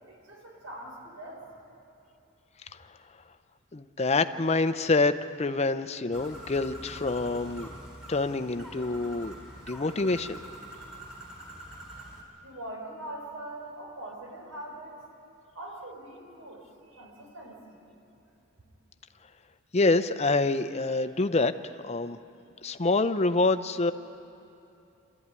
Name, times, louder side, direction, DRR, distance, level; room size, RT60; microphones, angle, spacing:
voice 1, 0.1-1.5 12.4-15.0 15.6-17.8, right 1 dB, 85° right, 0 dB, 5.0 m, -42 dB
voice 2, 3.7-7.7 8.1-9.4 9.7-10.4 19.7-21.5 21.8-22.2 22.6-23.9, left 3 dB, 30° left, 11 dB, 0.6 m, -26 dB
Bird, 6.1-12.2, right 1 dB, ahead, 3.6 m, -45 dB
26.5 x 13.5 x 9.7 m, 2.8 s
head